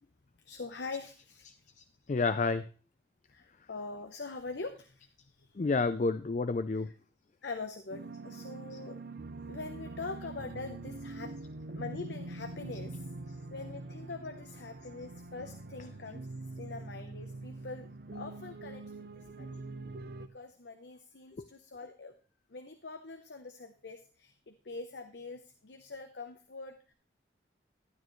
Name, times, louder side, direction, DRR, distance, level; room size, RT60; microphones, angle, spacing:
voice 1, 0.4-1.7 3.3-5.1 5.4-5.6 6.7-6.9 7.4-9.0 9.4-11.3 11.7-13.1 13.5-16.3 16.5-19.0 19.4-19.6 20.3-22.1 22.5-26.9, left 3 dB, 75° left, 8 dB, 0.8 m, -44 dB
voice 2, 2.1-2.7 5.6-6.9 21.4-21.5, left 3 dB, 40° left, 12 dB, 0.4 m, -29 dB
sound 1, 7.9-20.3, right 2 dB, 55° right, 0.6 m, -44 dB
12.5 x 9.3 x 3.1 m, 0.37 s
head